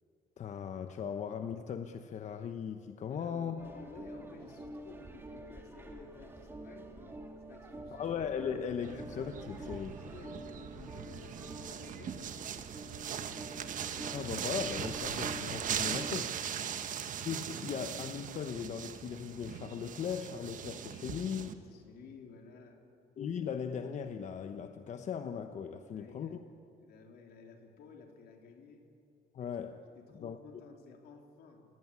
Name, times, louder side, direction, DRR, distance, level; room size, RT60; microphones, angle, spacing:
voice 1, 0.4-3.6 7.9-9.9 14.1-16.3 17.2-21.6 23.2-26.4 29.3-29.8 30.1-30.4, left 7 dB, 50° left, 7 dB, 1.0 m, -38 dB
voice 2, 3.1-7.2 7.5-8.1 8.5-8.6 8.9-9.0 9.6-13.6 16.6-16.9 21.6-22.8 25.9-26.4 26.8-28.8 29.4-29.6 30.0-31.7, left 5 dB, 80° left, 3 dB, 3.7 m, -54 dB
sound 1, 3.6-16.1, right 1 dB, 15° right, 2.2 m, -47 dB
sound 2, 8.8-21.5, right 8 dB, 55° right, 1.4 m, -40 dB
27.5 x 18.5 x 9.7 m, 2.5 s
cardioid pair, 145°, 16 cm